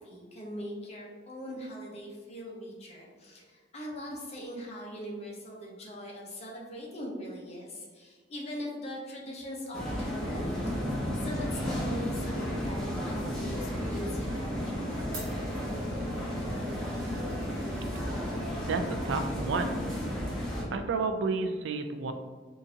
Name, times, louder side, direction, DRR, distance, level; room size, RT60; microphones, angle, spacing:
voice 1, 0.0-10.5 11.2-15.3 15.6-16.2, equal, 35° left, -2 dB, 0.8 m, -41 dB
sound 1, 9.7-20.6, equal, ahead, 0.9 m, -33 dB
Glass, 12.5-18.8, right 2 dB, 65° right, 1.3 m, -51 dB
voice 2, 18.6-20.0 20.7-22.1, right 4 dB, 80° right, 7 dB, 0.3 m, -31 dB
3.7 x 2.6 x 2.7 m, 1.5 s
head